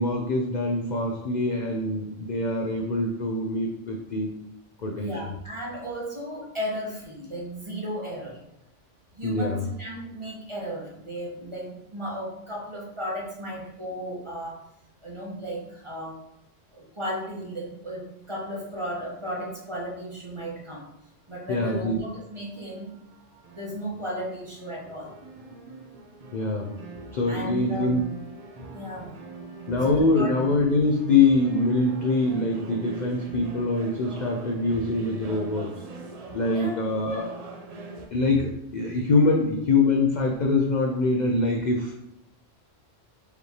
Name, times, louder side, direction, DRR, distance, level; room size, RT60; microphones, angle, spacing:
voice 1, 0.0-4.4 4.8-5.3 9.2-9.6 21.5-22.0 26.3-26.8 27.1-28.0 29.7-35.8 36.3-37.3 38.1-42.0, left 3 dB, 60° left, 1 dB, 0.5 m, -24 dB
voice 2, 4.9-8.4 9.1-14.6 15.0-16.2 16.7-20.9 21.3-22.9 23.5-25.1 27.3-27.9 28.7-29.1 29.9-30.3 36.5-36.7, equal, 25° right, -4 dB, 0.9 m, -35 dB
sound 1, 21.9-38.1, right 3 dB, 55° right, 0.4 m, -43 dB
5.0 x 3.2 x 2.8 m, 0.81 s
omnidirectional pair, 1.3 m